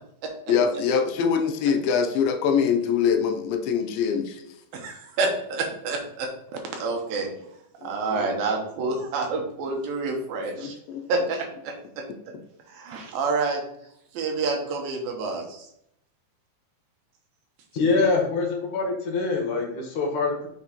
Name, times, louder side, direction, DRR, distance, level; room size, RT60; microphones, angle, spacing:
voice 1, 0.5-4.4 7.8-8.3 10.6-11.1, left 6 dB, 90° left, 6 dB, 2.5 m, -24 dB
voice 2, 4.7-7.3 7.8-10.7 11.1-12.0 12.7-13.6 14.1-15.7, right 3 dB, 80° right, 2 dB, 2.9 m, -28 dB
voice 3, 17.7-20.5, left 3 dB, 65° left, 0 dB, 2.6 m, -24 dB
6.6 x 5.9 x 3.0 m, 0.72 s
omnidirectional pair, 4.1 m